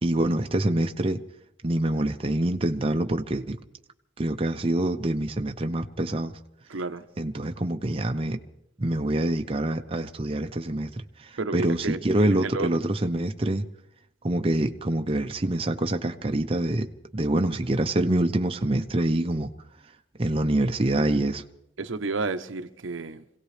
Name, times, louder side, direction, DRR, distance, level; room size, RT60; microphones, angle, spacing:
voice 1, 0.0-1.2 1.6-3.6 4.2-6.3 7.2-8.4 8.8-13.6 14.2-19.5 20.2-21.4, right 1 dB, 30° right, 0.6 m, -26 dB
voice 2, 6.7-7.0 11.4-12.0 12.4-12.9 21.8-23.2, right 3 dB, 80° right, 0.8 m, -31 dB
26.0 x 17.0 x 3.3 m
head